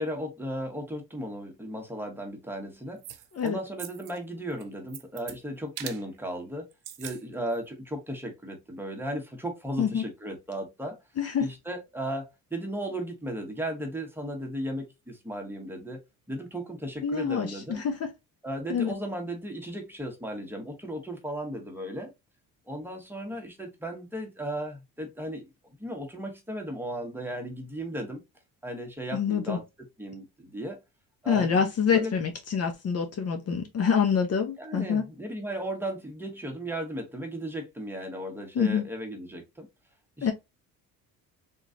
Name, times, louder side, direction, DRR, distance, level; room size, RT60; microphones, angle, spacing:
voice 1, 0.0-6.7 7.0-11.0 11.4-16.0 16.3-17.8 18.4-22.1 22.7-25.5 25.8-28.2 28.6-29.6 30.0-30.8 31.2-31.5 31.9-32.2 34.6-39.7 40.2-40.3, right 1 dB, 5° right, 1.4 m, -35 dB
sound 1, 3.0-3.5 3.8-4.2 4.5-5.4 5.8-6.0 6.7-7.2 7.5-7.6, right 12 dB, 90° right, 0.7 m, -41 dB
voice 2, 11.2-11.5 17.0-18.1 18.7-18.9 29.1-29.6 31.3-35.0 38.5-38.8 40.2-40.3, left 7 dB, 45° left, 0.9 m, -26 dB
3.7 x 3.0 x 2.6 m
cardioid pair, 105°, 35 cm